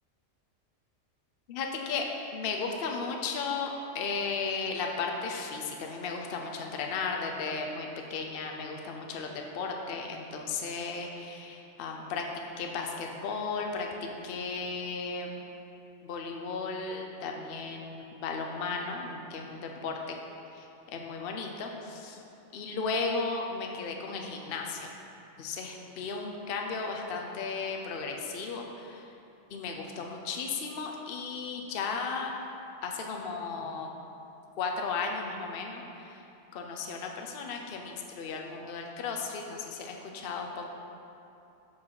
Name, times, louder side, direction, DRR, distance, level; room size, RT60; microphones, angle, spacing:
voice 1, 1.5-2.1 2.3-9.3 9.5-12.2 12.6-13.9 14.2-15.4 16.0-20.1 20.5-20.6 20.9-22.2 22.5-24.9 25.4-29.0 29.5-32.3 32.8-33.9 34.6-36.2 36.5-40.7, left 4 dB, 55° left, 1 dB, 0.8 m, -35 dB
7.2 x 5.6 x 4.7 m, 2.8 s
omnidirectional pair, 1.3 m